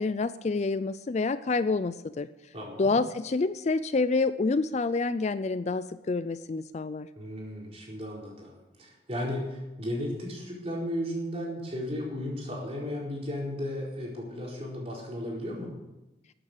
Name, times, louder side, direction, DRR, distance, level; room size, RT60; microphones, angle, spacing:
voice 1, 0.0-2.3 2.8-7.1, left 3 dB, 35° left, 14 dB, 0.4 m, -28 dB
voice 2, 2.5-2.9 7.1-15.7, left 1 dB, 30° right, -3 dB, 4.6 m, -35 dB
14.0 x 8.6 x 8.3 m, 1.0 s
head